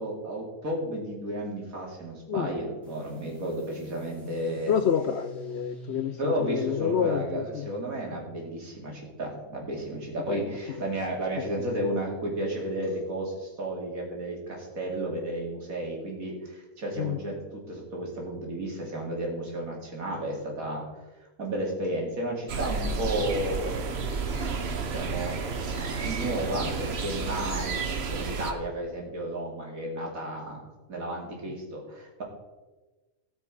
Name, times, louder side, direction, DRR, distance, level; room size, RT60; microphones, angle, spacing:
voice 1, 0.0-4.7 5.9-20.8 21.4-24.0 24.9-25.4 25.8-30.6 30.9-32.2, right 1 dB, 75° right, -1 dB, 3.0 m, -33 dB
sound 1, 2.8-10.1, right 1 dB, ahead, 4.0 m, -47 dB
voice 2, 4.7-7.7 10.3-10.5 17.0-17.2, left 8 dB, 65° left, 10 dB, 0.7 m, -28 dB
sound 2, 22.5-28.5, right 4 dB, 50° right, 1.2 m, -31 dB
17.5 x 6.0 x 4.8 m, 1.2 s
omnidirectional pair, 1.5 m